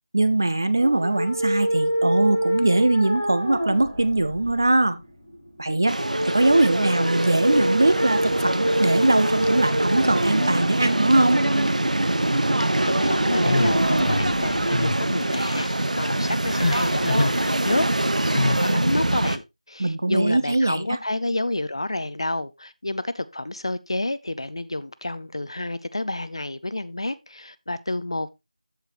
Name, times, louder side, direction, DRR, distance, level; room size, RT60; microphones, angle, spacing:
voice 1, 0.1-5.0 5.6-6.0 6.3-11.4 19.8-21.0, right 2 dB, 25° right, 0.6 m, -21 dB
sound 1, 0.8-15.7, equal, ahead, 2.2 m, -28 dB
sound 2, 5.9-19.4, right 1 dB, 75° right, 1.1 m, -24 dB
voice 2, 12.8-17.9 18.3-28.3, left 2 dB, 45° left, 0.6 m, -29 dB
sound 3, 13.4-14.3 14.7-15.0 15.3-15.8 16.5-17.4 18.3-18.7, left 2 dB, 70° left, 1.1 m, -25 dB
14.0 x 4.9 x 3.0 m
figure-of-eight pair, 180°, 4 cm